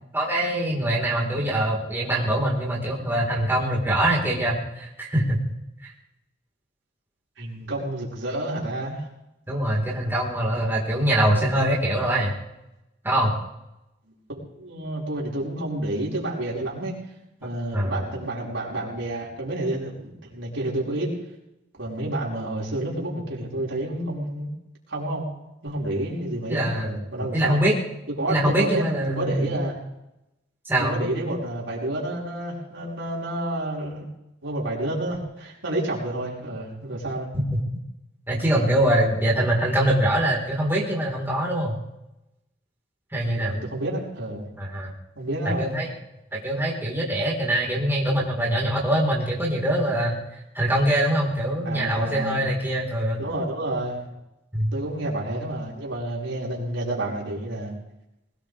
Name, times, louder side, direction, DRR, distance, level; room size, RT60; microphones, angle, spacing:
voice 1, 0.1-5.4 5.8-5.9 9.5-12.3 13.0-13.3 17.7-18.1 26.5-26.9 27.3-27.7 28.3-29.6 30.7-31.0 38.3-41.7 43.1-43.5 44.6-44.9 45.6-45.9 46.4-50.2 50.5-53.2 54.5-54.7, right 1 dB, 10° right, -4 dB, 4.4 m, -23 dB
voice 2, 7.4-9.1 14.3-17.0 17.4-21.1 21.8-24.5 24.9-25.2 25.6-27.6 28.1-28.8 29.2-29.7 30.8-34.0 34.4-37.3 39.4-39.6 43.2-44.5 45.2-45.7 51.6-52.4 53.2-54.1 54.7-57.7, right 1 dB, 70° right, -4 dB, 5.4 m, -29 dB
21.0 x 19.0 x 3.5 m, 0.88 s
head